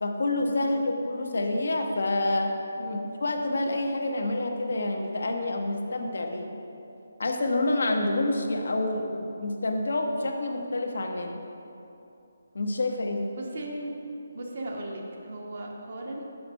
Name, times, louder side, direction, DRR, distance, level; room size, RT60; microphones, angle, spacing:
voice 1, 0.0-2.5 2.9-6.5 7.2-11.4 12.5-13.3, left 2 dB, 70° left, 3 dB, 0.8 m, -28 dB
voice 2, 13.3-13.9 14.3-16.2, right 1 dB, 55° right, 0 dB, 1.1 m, -37 dB
5.7 x 5.1 x 5.4 m, 2.8 s
figure-of-eight pair, 155°, 0 cm